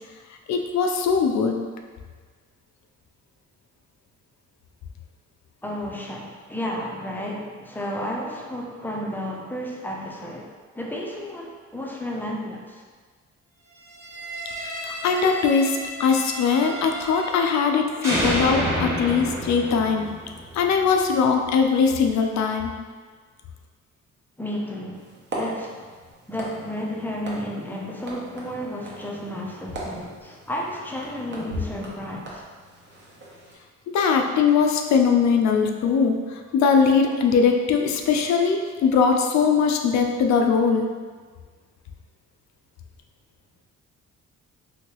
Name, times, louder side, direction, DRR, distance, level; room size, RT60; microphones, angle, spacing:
voice 1, 0.5-1.6 14.6-20.1 20.5-22.7 33.9-40.9, left 5 dB, 65° left, 4 dB, 0.5 m, -21 dB
voice 2, 5.6-12.8 24.4-25.1 25.3-25.9 26.3-32.5, equal, 5° left, -2 dB, 0.5 m, -32 dB
sound 1, 13.9-17.7 18.0-21.1, equal, 10° right, 1.1 m, -30 dB
sound 2, 24.9-33.5, equal, 40° right, 0.8 m, -38 dB
3.0 x 2.8 x 2.9 m, 1.5 s
cardioid pair, 90°, 30 cm